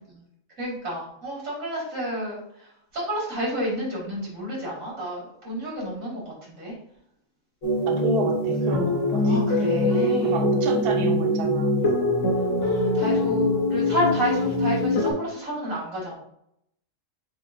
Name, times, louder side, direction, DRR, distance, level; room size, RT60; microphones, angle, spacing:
voice 1, 0.6-2.4 2.9-6.2 6.6-6.7 9.3-10.3 12.6-16.2, equal, 90° right, -4 dB, 2.5 m, -30 dB
sound 1, 7.6-15.1, left 1 dB, 70° left, 1.3 m, -23 dB
voice 2, 7.9-9.9 10.2-11.8, right 1 dB, 55° right, 1 dB, 0.8 m, -31 dB
7.3 x 2.6 x 2.5 m, 0.75 s
omnidirectional pair, 1.4 m